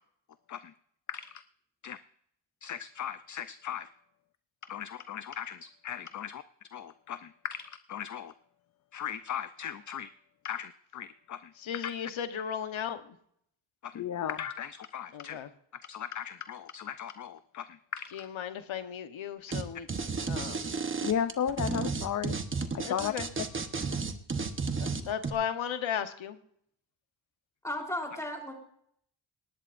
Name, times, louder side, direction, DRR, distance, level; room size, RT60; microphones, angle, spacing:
voice 1, 1.1-1.4 1.8-2.0 2.6-3.9 4.6-6.4 6.7-8.3 8.9-10.1 10.4-11.5 11.8-11.9 13.8-15.4 15.7-18.3 21.0-22.4 22.7-23.4, left 9 dB, 40° left, 12 dB, 0.5 m, -36 dB
voice 2, 11.6-13.0 15.1-15.5 18.1-19.9 20.3-20.7 22.8-23.3 24.8-26.4, left 8 dB, 85° left, 8 dB, 1.1 m, -35 dB
sound 1, 19.5-19.6 19.9-25.3, right 4 dB, 25° right, 1.0 m, -32 dB
voice 3, 27.6-28.5, left 1 dB, 5° left, 1 dB, 3.5 m, -35 dB
19.0 x 18.5 x 2.6 m, 0.68 s
wide cardioid pair, 135°, 46 cm